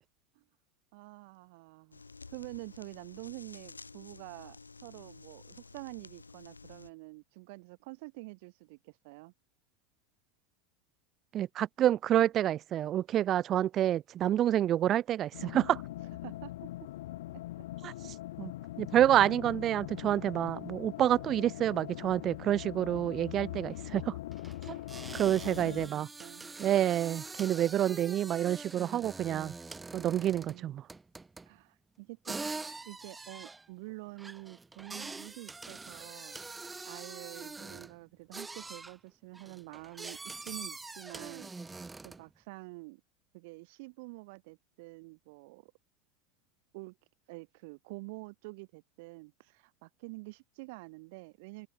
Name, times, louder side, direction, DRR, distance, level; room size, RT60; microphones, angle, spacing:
voice 1, 0.9-2.0 2.3-9.3 16.2-16.5 23.4-23.9 24.7-24.9 25.3-26.5 30.0-30.7 31.4-32.4 32.9-43.0 43.3-45.7 46.7-47.0 47.3-51.7, right 26 dB, 55° right, 3.6 m, -47 dB
sound 1, 1.9-6.9, left 4 dB, 80° left, 1.7 m, -52 dB
voice 2, 11.3-15.8 17.8-17.9 18.4-18.5 18.8-24.2 24.7-24.8 25.1-26.1 26.6-29.5 29.9-30.8, right 11 dB, 35° right, 0.3 m, -28 dB
sound 2, 15.3-25.9, left 15 dB, 60° left, 0.6 m, -42 dB
sound 3, 23.3-23.4 23.6-23.8 24.3-30.6 30.9-31.6 32.3-38.0 38.3-39.0 39.3-42.3, right 3 dB, 10° right, 5.3 m, -44 dB
open air
figure-of-eight pair, 80°, 0 cm